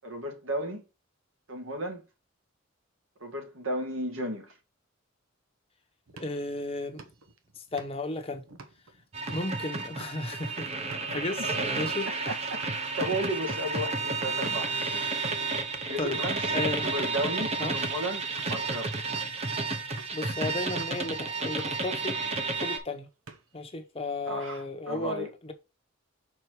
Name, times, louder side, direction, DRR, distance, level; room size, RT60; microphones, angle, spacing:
voice 1, 0.0-0.8 1.5-2.0 3.2-4.5 12.3-12.4 13.0-15.0 15.9-16.4 16.8-19.0 24.3-25.3, right 1 dB, 70° right, 1.8 m, -34 dB
sound 1, 6.1-12.1 12.5-12.8 13.2-13.3 13.5-13.7 14.2-14.7 15.2-15.5 16.1-16.3 16.8-17.1 17.6-17.8 18.2-18.7 19.0-19.4 20.0-20.3 20.8-21.1 21.4-21.8 22.1-22.7 23.0-23.7, right 3 dB, 85° right, 1.1 m, -50 dB
voice 2, 6.2-7.0 7.6-8.5 9.3-10.7 11.1-12.1 15.4-15.5 16.0-16.2 16.5-17.0 17.6-17.8 20.1-22.2 22.6-23.1 23.5-25.5, left 2 dB, 30° left, 0.9 m, -34 dB
sound 2, 9.1-22.8, right 3 dB, 30° right, 1.0 m, -31 dB
5.8 x 4.7 x 4.6 m
head